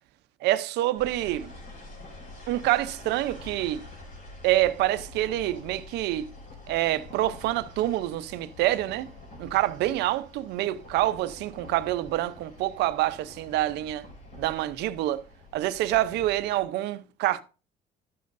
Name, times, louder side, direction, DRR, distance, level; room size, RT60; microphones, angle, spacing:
voice 1, 0.4-1.5 2.5-3.8 4.4-6.3 6.7-9.1 9.4-14.1 14.4-15.2 15.5-17.4, right 15 dB, 85° right, 0.6 m, -26 dB
sound 1, 1.0-16.6, left 2 dB, 60° left, 4.8 m, -46 dB
12.0 x 9.4 x 2.6 m
cardioid pair, 110°, 17 cm